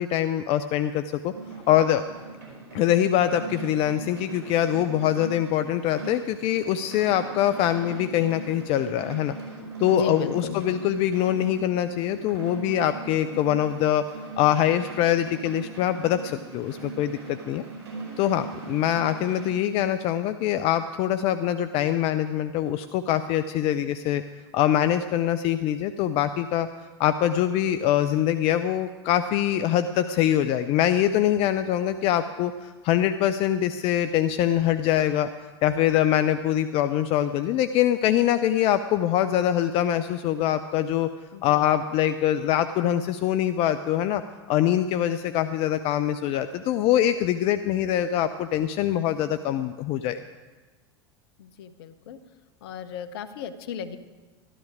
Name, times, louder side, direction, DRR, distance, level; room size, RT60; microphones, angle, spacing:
voice 1, 0.0-1.3 1.7-2.0 2.7-9.3 9.8-14.1 14.4-17.6 18.2-24.2 24.5-26.7 27.0-35.3 35.6-41.1 41.4-44.2 44.5-50.2, left 11 dB, 45° left, 11 dB, 0.5 m, -24 dB
sound 1, 1.3-19.5, right 3 dB, 65° right, 4.7 m, -40 dB
voice 2, 9.9-10.6 41.3-41.6 51.4-52.2 52.6-54.0, left 8 dB, 65° left, 11 dB, 0.9 m, -34 dB
13.0 x 12.5 x 4.9 m, 1.3 s
figure-of-eight pair, 80°, 14 cm